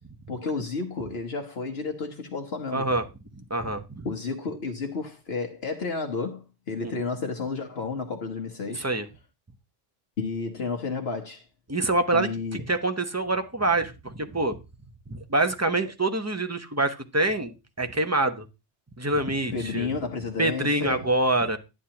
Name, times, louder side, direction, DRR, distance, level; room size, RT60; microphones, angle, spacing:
voice 1, 0.3-2.9 4.0-8.9 10.2-11.5 12.1-12.6 19.5-21.1, left 4 dB, 60° left, 1.2 m, -31 dB
voice 2, 2.7-3.0 3.5-4.1 6.8-6.9 8.7-9.1 11.7-14.6 15.1-18.4 19.0-19.9 20.4-21.6, right 2 dB, 15° right, 0.7 m, -26 dB
11.5 x 9.9 x 2.9 m
omnidirectional pair, 1.2 m